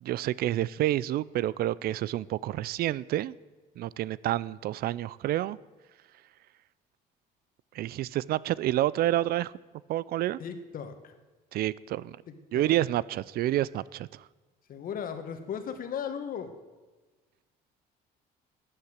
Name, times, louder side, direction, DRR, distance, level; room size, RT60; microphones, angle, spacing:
voice 1, 0.0-3.3 3.8-5.6 7.7-9.5 9.9-10.4 11.5-12.2 12.5-14.2, right 14 dB, 65° right, 0.4 m, -29 dB
voice 2, 10.4-11.2 12.3-12.8 14.7-16.5, left 7 dB, 55° left, 1.6 m, -37 dB
13.5 x 8.9 x 7.9 m
cardioid pair, 110°, 17 cm